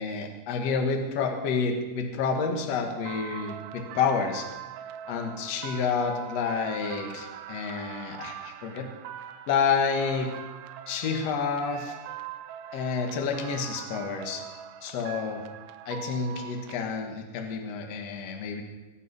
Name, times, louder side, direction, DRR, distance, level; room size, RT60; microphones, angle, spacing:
voice 1, 0.0-4.5 5.1-8.9 9.5-10.4 10.9-11.9 12.7-14.4 14.8-15.4 15.9-18.6, left 5 dB, 70° left, 3 dB, 1.6 m, -29 dB
sound 1, 3.0-16.8, right 11 dB, 90° right, 3.0 m, -42 dB
21.5 x 7.2 x 5.4 m, 1.2 s
omnidirectional pair, 5.2 m